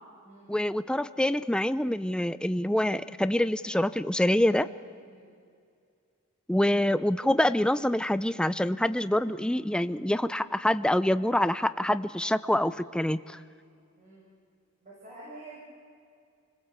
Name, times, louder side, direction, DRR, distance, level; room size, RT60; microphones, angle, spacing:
voice 1, 0.5-4.7 6.5-13.4, left 1 dB, 5° left, 13 dB, 0.5 m, -26 dB
voice 2, 14.8-15.6, right 2 dB, 35° right, -6 dB, 6.9 m, -48 dB
29.5 x 20.5 x 8.2 m, 2.3 s
head